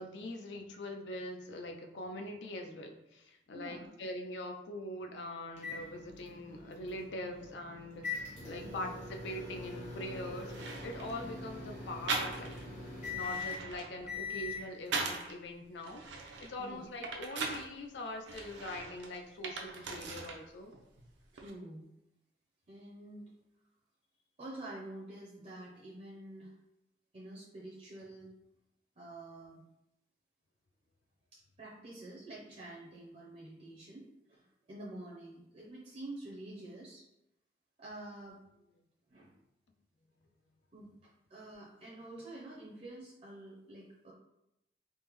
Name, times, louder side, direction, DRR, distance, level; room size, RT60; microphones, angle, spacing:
voice 1, 0.0-12.6 13.1-16.0 16.4-20.7, left 1 dB, 70° left, 4 dB, 0.4 m, -43 dB
voice 2, 3.5-3.9 8.6-8.9 11.2-11.3 16.6-16.8 21.3-21.9 22.7-23.3 24.4-26.5 27.1-28.3 29.0-29.6 31.3-37.1 37.8-38.4 39.1-39.3 40.7-44.1, right 1 dB, 35° right, -5 dB, 0.5 m, -48 dB
sound 1, 5.6-14.7, left 4 dB, 40° left, 0.8 m, -43 dB
sound 2, 10.0-10.1 10.5-11.2 12.1-12.7 13.1-15.3 15.8-17.7 18.3-20.4 20.7-21.5, right 3 dB, 80° right, 0.5 m, -40 dB
3.5 x 2.1 x 3.0 m, 0.86 s
head